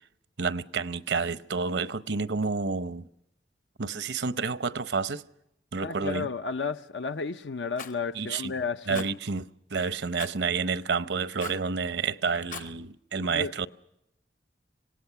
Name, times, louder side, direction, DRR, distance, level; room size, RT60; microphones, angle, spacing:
voice 1, 0.4-3.1 3.8-5.2 5.7-6.3 8.1-8.5 8.9-9.4 9.7-13.7, right 4 dB, 80° right, 0.7 m, -29 dB
voice 2, 5.8-9.1 13.2-13.5, left 4 dB, 90° left, 0.7 m, -32 dB
Rattle, 7.8-8.0 8.9-9.1 10.2-10.4 11.4-11.7 12.4-12.7, left 6 dB, 50° left, 0.9 m, -40 dB
26.5 x 18.0 x 5.8 m
head